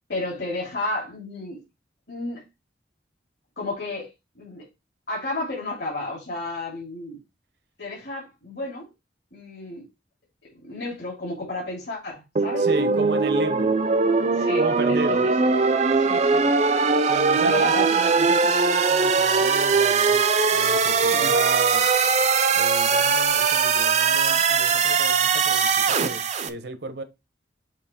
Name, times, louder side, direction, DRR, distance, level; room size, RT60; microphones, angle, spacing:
voice 1, 0.1-1.6 2.1-2.4 3.6-4.6 5.1-7.2 7.8-8.8 9.3-9.8 10.6-12.7 14.3-14.6 14.9-15.3 15.9-16.4 16.9-17.1 17.4-17.9 21.0-21.3, left 2 dB, 65° left, 2.8 m, -32 dB
sound 1, 12.4-26.5, right 5 dB, 40° right, 0.6 m, -20 dB
voice 2, 12.6-13.7 14.6-15.3 17.1-20.2 20.5-21.9 22.6-27.0, right 2 dB, 65° right, 0.9 m, -33 dB
7.4 x 3.0 x 4.2 m
head